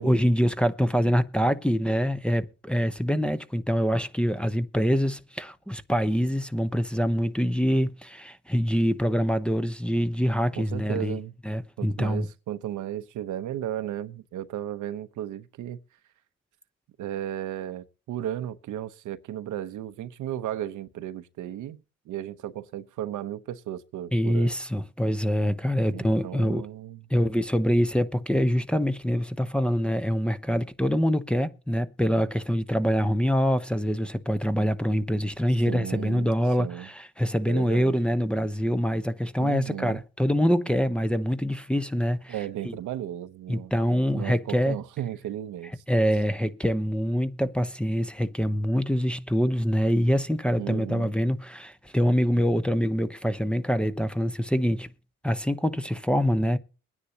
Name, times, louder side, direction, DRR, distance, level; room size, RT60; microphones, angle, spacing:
voice 1, 0.0-11.2 11.4-12.3 24.1-26.7 27.1-42.3 42.6-42.8 43.5-44.8 45.9-54.9 55.2-56.6, equal, 5° left, 0.8 m, -25 dB
voice 2, 10.6-11.3 11.8-15.8 17.0-24.5 25.9-27.1 35.7-36.9 37.5-37.9 39.4-40.0 42.3-43.7 44.1-45.8 50.6-51.1, right 11 dB, 80° right, 0.9 m, -35 dB
22.5 x 9.8 x 2.8 m
cardioid pair, 90°, 30 cm